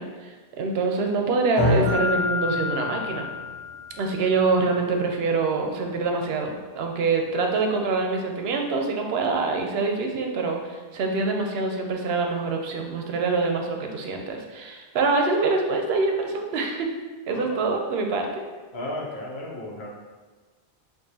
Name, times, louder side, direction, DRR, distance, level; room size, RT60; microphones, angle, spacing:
voice 1, 0.0-3.3 4.0-10.6 10.9-16.9 17.3-18.4, right 3 dB, 80° right, 3 dB, 0.8 m, -25 dB
sound 1, 1.6-9.8, left 1 dB, 30° left, 0.6 m, -32 dB
Mallet percussion, 1.9-4.4, left 4 dB, 20° right, 1.3 m, -30 dB
voice 2, 18.7-19.9, left 1 dB, 80° left, -2 dB, 1.0 m, -34 dB
4.6 x 2.5 x 2.7 m, 1.4 s
omnidirectional pair, 1.0 m